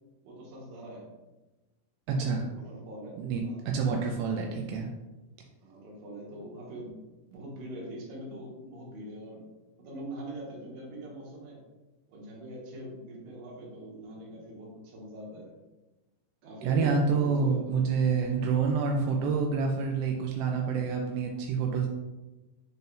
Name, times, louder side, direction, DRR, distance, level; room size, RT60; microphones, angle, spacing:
voice 1, 0.2-1.1 2.3-3.2 3.4-3.7 5.6-6.9 7.3-9.4 9.8-11.6 12.1-15.5 16.4-17.9, right 1 dB, 65° right, -3 dB, 2.9 m, -43 dB
voice 2, 2.1-2.5 3.2-4.9 16.6-21.9, right 5 dB, 85° right, 1 dB, 2.7 m, -27 dB
6.5 x 4.5 x 3.4 m, 1.1 s
omnidirectional pair, 4.8 m